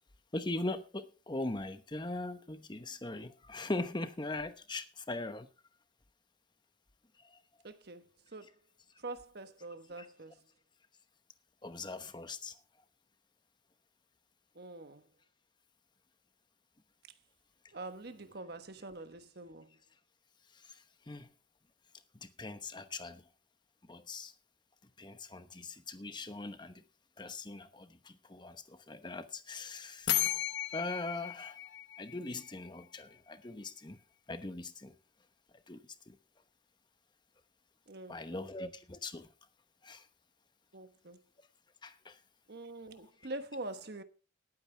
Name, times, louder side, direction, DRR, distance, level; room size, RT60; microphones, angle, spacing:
voice 1, 0.3-5.5 7.2-7.4 10.0-10.1 11.6-12.6 20.5-21.3 22.2-23.3 23.8-24.3 25.0-26.8 27.2-30.2 30.7-31.6 32.0-34.0 34.3-34.9 35.7-36.2 38.1-39.3 39.8-40.1 41.8-42.2, left 2 dB, 25° left, 0.9 m, -41 dB
voice 2, 7.6-8.0 8.3-8.5 9.0-10.3 14.5-15.0 17.7-19.7 37.9-38.5 40.7-41.2 42.5-44.0, right 2 dB, 55° right, 1.2 m, -45 dB
sound 1, 30.1-32.8, left 13 dB, 70° left, 0.9 m, -35 dB
19.0 x 8.9 x 3.4 m
head